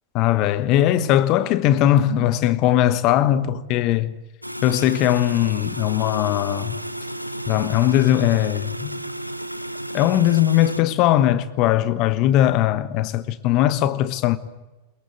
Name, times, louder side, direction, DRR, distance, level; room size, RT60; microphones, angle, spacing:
voice 1, 0.1-4.1 4.6-6.8 7.5-9.0 9.9-14.4, left 12 dB, 40° left, 1.3 m, -19 dB
sound 1, 4.4-10.8, right 1 dB, 90° left, 0.9 m, -32 dB
22.0 x 21.5 x 8.3 m
figure-of-eight pair, 90°, 0 cm